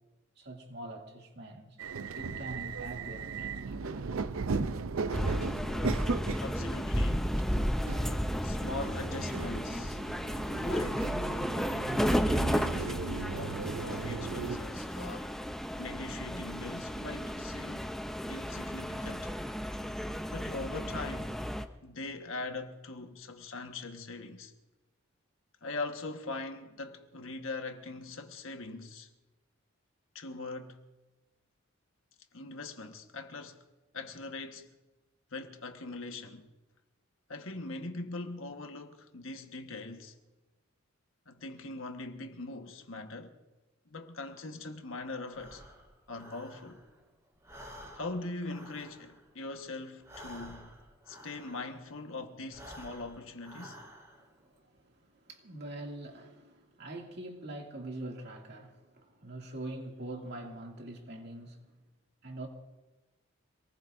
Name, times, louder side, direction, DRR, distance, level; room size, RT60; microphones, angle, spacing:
voice 1, 0.4-1.8 2.1-4.1 4.6-4.8 54.2-61.7 62.2-62.5, right 1 dB, 55° right, 2.5 m, -44 dB
sound 1, 1.8-14.6, right 4 dB, 80° right, 0.6 m, -37 dB
sound 2, 5.1-21.7, equal, ahead, 0.6 m, -33 dB
voice 2, 6.4-7.4 8.4-10.0 10.5-11.2 12.0-15.3 15.8-18.0 18.3-19.3 20.3-21.4 21.8-24.5 25.6-29.1 30.1-30.8 32.3-33.6 33.9-34.7 35.3-36.5 37.3-40.2 41.3-43.4 43.8-45.6 46.1-46.8 47.9-50.7 51.1-53.8, left 3 dB, 70° left, 1.4 m, -41 dB
Breathing, 45.3-47.1 47.4-52.0 52.4-54.4, equal, 15° right, 3.7 m, -51 dB
27.0 x 19.5 x 2.6 m
head